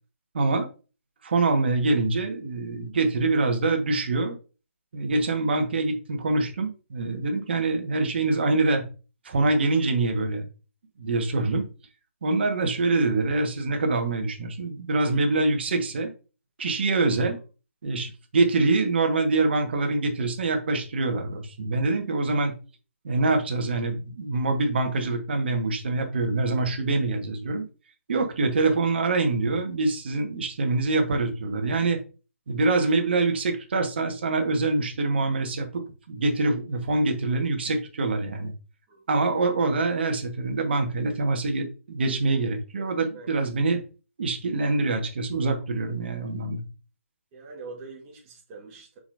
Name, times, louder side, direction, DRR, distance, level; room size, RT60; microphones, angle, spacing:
voice 1, 0.3-0.7 1.2-4.4 4.9-8.8 9.2-10.5 11.0-11.6 12.2-16.1 16.6-17.4 17.8-22.5 23.0-27.6 28.1-32.0 32.5-38.5 39.1-43.8 44.2-46.6, right 3 dB, 45° right, 4 dB, 1.6 m, -25 dB
voice 2, 42.7-43.4 47.3-49.0, right 4 dB, 20° right, -2 dB, 1.6 m, -44 dB
6.9 x 5.3 x 2.7 m, 0.34 s
hypercardioid pair, 160°, 8 cm